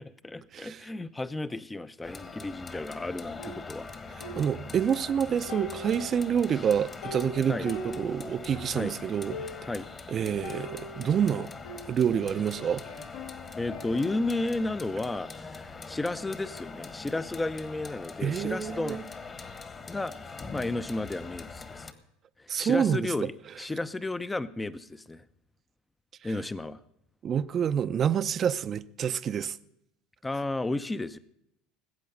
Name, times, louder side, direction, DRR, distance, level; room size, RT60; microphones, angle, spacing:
voice 1, 0.0-3.9 7.5-7.7 8.7-8.9 9.7-9.9 13.6-19.0 19.9-20.1 20.5-21.9 22.4-25.2 26.2-26.8 30.2-31.2, left 2 dB, 15° left, 0.7 m, -33 dB
sound 1, 2.0-21.9, left 4 dB, 30° left, 1.5 m, -43 dB
sound 2, 3.4-5.1 5.5-8.8 9.0-9.1 9.3-9.9 10.4-12.4 12.8-14.5, left 1 dB, 80° left, 3.2 m, -42 dB
voice 2, 4.4-9.4 10.1-11.5 11.9-12.8 18.2-19.0 22.5-23.1 27.2-29.6, right 8 dB, 40° right, 0.7 m, -27 dB
19.0 x 8.4 x 5.4 m
hypercardioid pair, 90°, 0 cm